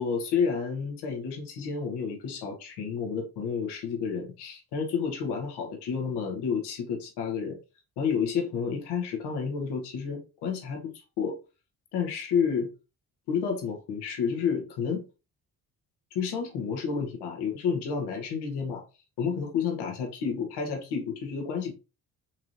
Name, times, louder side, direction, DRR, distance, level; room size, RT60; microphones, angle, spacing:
voice 1, 0.0-7.6 8.0-11.4 11.9-12.7 13.3-15.0 16.1-18.8 19.2-21.7, left 6 dB, 80° left, 1.2 m, -30 dB
4.4 x 3.0 x 2.6 m
supercardioid pair, 55°, 39 cm